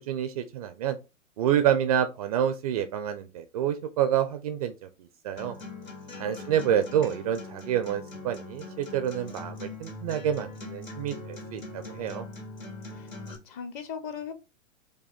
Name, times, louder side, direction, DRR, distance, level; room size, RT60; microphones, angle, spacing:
voice 1, 0.1-1.0 1.4-4.7 5.2-5.5 6.2-12.3, right 10 dB, 30° right, 0.4 m, -28 dB
Acoustic guitar, 5.4-13.4, left 2 dB, 85° left, 2.2 m, -42 dB
voice 2, 6.2-6.8 12.9-13.1 13.4-14.3, left 7 dB, 25° left, 0.5 m, -39 dB
5.1 x 2.1 x 3.4 m
figure-of-eight pair, 110°, 39 cm